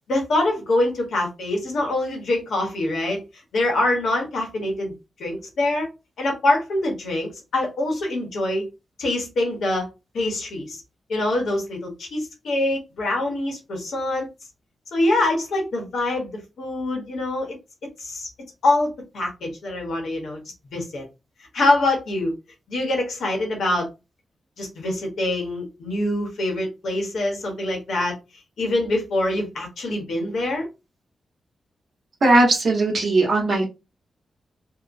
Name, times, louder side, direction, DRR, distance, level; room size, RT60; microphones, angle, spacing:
voice 1, 0.1-3.2 3.5-4.9 5.2-5.9 6.2-8.7 9.0-9.9 10.1-10.8 11.1-14.3 14.9-17.6 18.0-18.3 18.6-20.4 20.7-21.1 21.5-22.3 22.7-23.9 24.6-28.2 28.6-30.7, left 2 dB, 80° left, 1.0 m, -24 dB
voice 2, 32.2-33.6, right 2 dB, 50° right, 0.9 m, -18 dB
2.8 x 2.1 x 2.5 m
wide cardioid pair, 155°, 0 cm